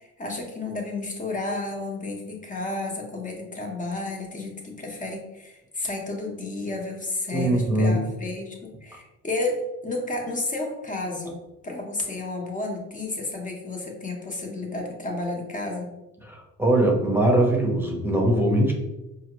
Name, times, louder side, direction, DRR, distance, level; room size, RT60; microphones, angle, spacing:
voice 1, 0.0-11.4 11.6-15.9, left 2 dB, 25° left, 1 dB, 1.1 m, -32 dB
voice 2, 7.3-8.1 16.2-18.7, right 1 dB, 5° right, -1 dB, 0.9 m, -21 dB
4.9 x 2.5 x 3.0 m, 0.98 s
cardioid pair, 90°, 30 cm